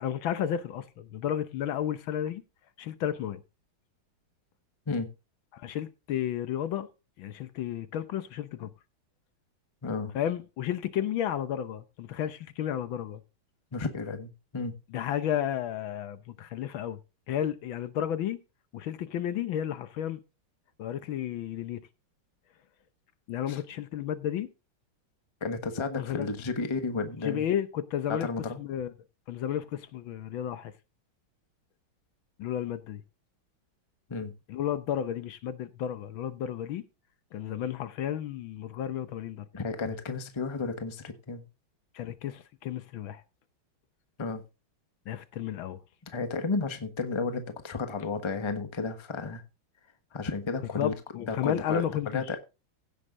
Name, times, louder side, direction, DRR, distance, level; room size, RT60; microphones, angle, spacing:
voice 1, 0.0-2.4 2.8-3.4 5.5-6.9 7.2-8.7 10.1-13.2 14.9-17.0 17.3-18.4 18.7-20.2 20.8-21.8 23.3-24.5 26.0-26.3 27.2-28.3 28.6-28.9 29.3-30.7 32.4-33.0 34.5-36.8 37.3-39.5 41.9-43.2 45.1-45.8 50.8-52.3, left 10 dB, 70° left, 1.6 m, -32 dB
voice 2, 9.8-10.1 13.7-14.8 23.5-23.6 25.4-27.4 28.1-28.6 34.1-34.3 39.5-41.4 44.2-44.4 46.1-49.4 50.1-50.9 51.3-52.4, left 4 dB, 20° left, 0.9 m, -32 dB
16.0 x 6.7 x 3.8 m
omnidirectional pair, 2.3 m